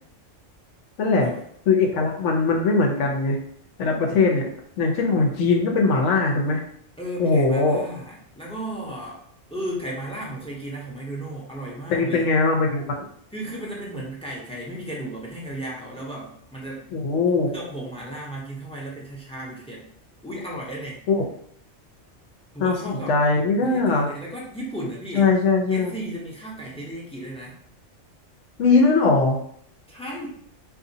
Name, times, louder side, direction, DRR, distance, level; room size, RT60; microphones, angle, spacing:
voice 1, 1.0-1.3 1.7-3.4 3.8-4.4 4.8-6.6 7.2-7.8 11.9-13.0 16.9-17.5 21.1-21.2 22.6-24.1 25.1-25.9 28.6-29.4, left 3 dB, 75° left, 0 dB, 1.0 m, -20 dB
voice 2, 7.0-9.2 9.5-12.3 13.3-16.8 17.5-19.8 20.2-21.0 22.5-23.2 23.6-25.3 25.7-27.6 29.9-30.3, right 1 dB, 5° left, -4 dB, 0.6 m, -34 dB
3.8 x 2.7 x 2.7 m, 0.63 s
omnidirectional pair, 1.3 m